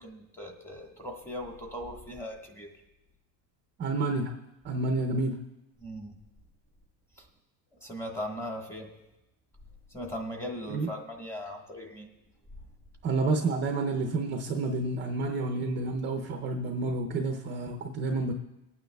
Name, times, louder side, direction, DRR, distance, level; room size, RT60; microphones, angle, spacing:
voice 1, 0.0-2.7 5.8-6.2 7.2-7.3 7.8-8.9 9.9-12.1, equal, 5° left, 0 dB, 1.3 m, -39 dB
voice 2, 3.8-4.3 4.6-5.4 10.7-10.9 13.0-18.3, right 3 dB, 25° right, 3 dB, 0.6 m, -29 dB
23.5 x 9.1 x 2.3 m, 0.98 s
supercardioid pair, 145°, 49 cm